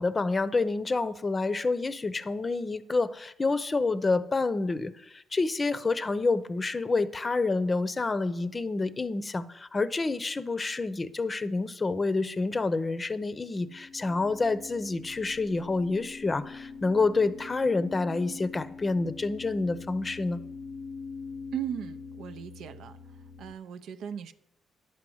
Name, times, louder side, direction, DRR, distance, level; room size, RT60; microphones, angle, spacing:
voice 1, 0.0-20.4, left 3 dB, 25° left, 0.7 m, -28 dB
sound 1, 13.4-23.5, left 4 dB, 75° left, 0.7 m, -43 dB
voice 2, 21.5-23.0 23.4-24.3, right 8 dB, 75° right, 0.6 m, -37 dB
10.0 x 6.1 x 7.8 m
cardioid pair, 90°, 0 cm